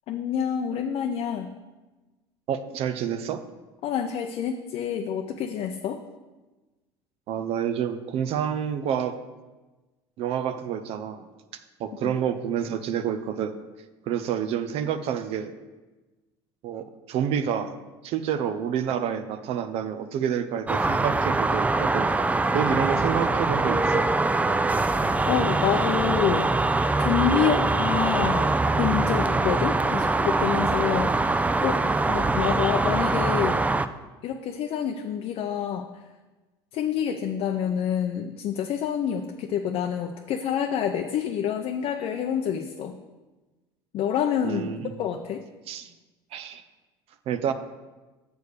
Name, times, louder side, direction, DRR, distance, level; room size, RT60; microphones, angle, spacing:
voice 1, 0.1-1.5 3.8-6.0 12.0-12.1 25.3-26.5 27.0-33.6 34.2-35.9 36.7-43.0 43.9-44.7 45.0-45.4, left 8 dB, 55° left, 4 dB, 0.6 m, -27 dB
voice 2, 2.5-3.4 7.3-9.2 10.2-11.3 11.8-13.6 14.1-15.6 16.6-17.7 18.0-22.1 22.5-24.0 27.4-27.6 44.4-44.9 45.7-45.9 46.3-46.6 47.3-47.5, right 8 dB, 55° right, 10 dB, 0.7 m, -28 dB
sound 1, 20.7-33.9, right 3 dB, 10° right, 0.4 m, -23 dB
6.9 x 4.8 x 6.5 m, 1.2 s
hypercardioid pair, 75°, 12 cm